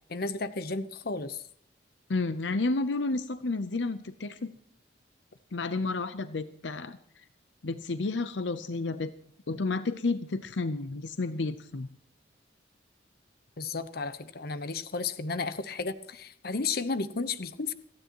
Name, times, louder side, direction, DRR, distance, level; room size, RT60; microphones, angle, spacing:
voice 1, 0.1-1.4 13.6-17.7, left 4 dB, 55° left, 12 dB, 0.9 m, -33 dB
voice 2, 2.1-4.5 5.5-7.0 7.6-9.1 9.5-11.9, left 3 dB, 80° left, 12 dB, 0.7 m, -31 dB
28.5 x 9.7 x 3.0 m, 0.67 s
head